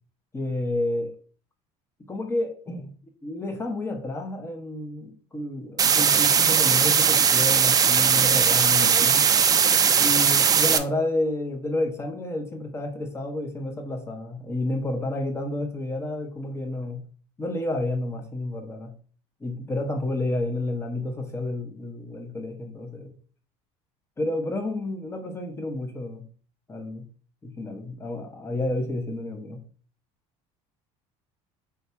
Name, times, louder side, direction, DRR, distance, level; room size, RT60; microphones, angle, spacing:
voice 1, 0.3-1.1 2.1-2.9 3.2-9.3 10.0-17.0 17.4-18.9 19.4-23.1 24.2-26.3 26.7-27.1 27.4-29.6, left 2 dB, 15° left, 0.8 m, -30 dB
sound 1, 5.8-10.8, right 7 dB, 25° right, 0.4 m, -19 dB
3.3 x 2.6 x 4.4 m
supercardioid pair, 110°, 15 cm